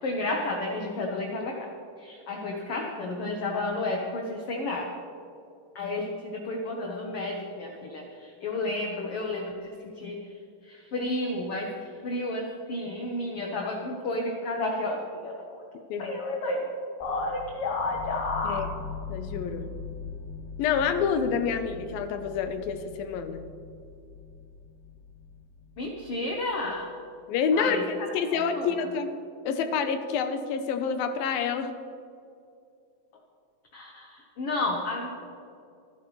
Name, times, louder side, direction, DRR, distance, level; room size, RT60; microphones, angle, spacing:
voice 1, 0.0-1.7 2.0-4.9 5.7-15.6 16.0-16.6 17.0-18.7 25.8-26.9 27.5-28.9 33.7-35.1, left 2 dB, 60° left, 0 dB, 1.6 m, -32 dB
sound 1, 17.0-26.8, left 5 dB, ahead, 1.8 m, -42 dB
voice 2, 19.1-19.7 20.6-23.4 27.3-29.1 29.5-31.7, left 6 dB, 85° left, 8 dB, 2.7 m, -28 dB
25.0 x 11.0 x 3.3 m, 2.5 s
omnidirectional pair, 4.1 m